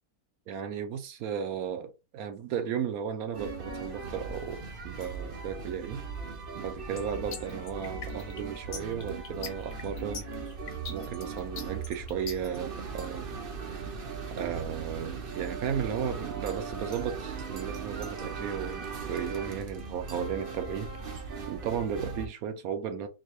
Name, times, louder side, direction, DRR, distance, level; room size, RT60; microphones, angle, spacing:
voice 1, 0.5-4.6 4.8-6.0 6.6-10.2 10.9-13.4 13.7-13.9 14.4-20.9 21.5-23.1, right 8 dB, 70° right, 1.1 m, -35 dB
sound 1, 3.3-22.3, right 5 dB, 50° right, 0.7 m, -39 dB
sound 2, 7.0-12.6, left 6 dB, 60° left, 1.1 m, -42 dB
4.1 x 2.2 x 3.1 m
omnidirectional pair, 1.6 m